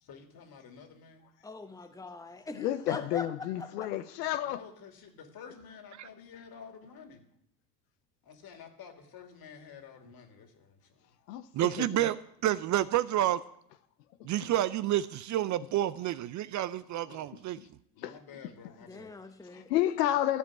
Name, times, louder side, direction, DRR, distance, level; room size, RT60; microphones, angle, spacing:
voice 1, 0.0-1.3 4.4-7.2 8.2-10.8 17.0-17.3 17.9-19.1, left 6 dB, 50° left, 2.6 m, -50 dB
voice 2, 1.4-3.3 3.6-3.9 18.9-19.7, left 3 dB, 5° left, 1.1 m, -42 dB
voice 3, 2.5-4.6 11.3-12.1 17.6-17.7 18.0-18.1 19.5-20.4, left 13 dB, 85° left, 0.8 m, -31 dB
voice 4, 11.6-12.2 12.4-13.4 14.2-17.6, right 13 dB, 40° right, 0.5 m, -29 dB
14.0 x 5.2 x 8.6 m
hypercardioid pair, 85°, 47 cm